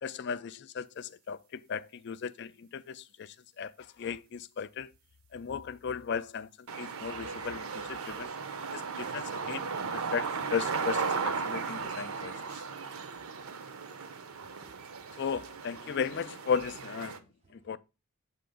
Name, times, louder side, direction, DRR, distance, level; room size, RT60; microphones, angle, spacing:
voice 1, 0.0-4.9 5.3-8.3 8.7-9.7 9.9-12.3 15.2-17.2 17.5-17.8, left 6 dB, 50° left, 0.3 m, -36 dB
sound 1, 6.7-17.2, right 5 dB, 70° right, 0.7 m, -36 dB
voice 2, 14.3-15.2 17.1-17.8, right 3 dB, 30° right, 0.3 m, -62 dB
7.6 x 2.8 x 5.0 m
head